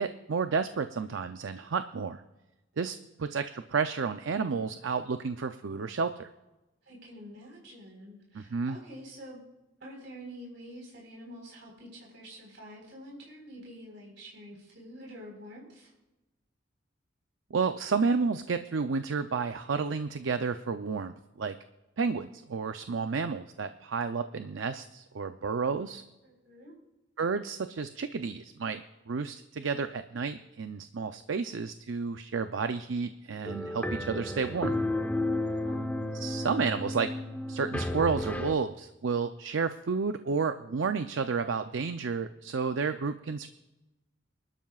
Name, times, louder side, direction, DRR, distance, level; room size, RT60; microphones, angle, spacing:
voice 1, 0.0-2.2 2.8-6.3 8.3-8.8 17.5-21.6 22.0-26.0 27.2-28.8 29.1-34.7 36.1-37.1 37.5-43.5, right 5 dB, 85° right, 9 dB, 0.5 m, -31 dB
voice 2, 6.8-9.4 9.8-15.9 26.2-26.7 35.5-35.8, equal, 65° right, -2 dB, 4.4 m, -47 dB
sound 1, 33.5-38.5, left 1 dB, 10° left, 0.9 m, -32 dB
25.5 x 12.5 x 2.4 m, 1.0 s
head